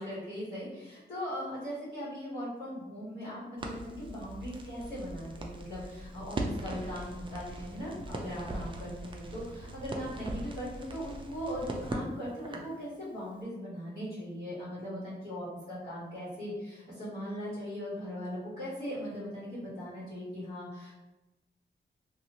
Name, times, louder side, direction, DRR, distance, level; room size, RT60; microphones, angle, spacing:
voice 1, 0.0-20.9, equal, 50° left, -10 dB, 1.3 m, -39 dB
Crackle, 3.6-12.8, right 2 dB, 25° right, 0.3 m, -40 dB
2.7 x 2.4 x 2.9 m, 1.1 s
wide cardioid pair, 140°, 19 cm